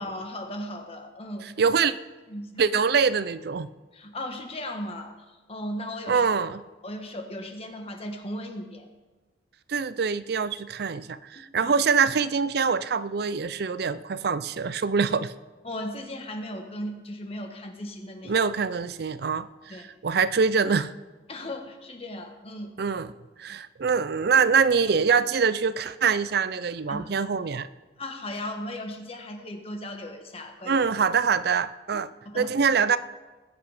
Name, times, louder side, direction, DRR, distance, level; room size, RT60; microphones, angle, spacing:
voice 1, 0.0-1.7 2.3-2.6 3.9-5.1 5.5-6.2 6.8-8.9 11.3-11.7 15.6-18.4 19.7-19.9 21.3-22.7 26.9-27.0 28.0-30.8 31.9-32.5, left 1 dB, 35° left, 4 dB, 1.4 m, -36 dB
voice 2, 1.6-1.9 2.6-3.7 6.1-6.6 9.7-15.3 18.2-20.9 22.8-23.1 23.4-27.7 30.7-32.1 32.3-33.0, right 5 dB, 60° right, 15 dB, 0.5 m, -24 dB
20.0 x 8.1 x 5.0 m, 1.3 s
head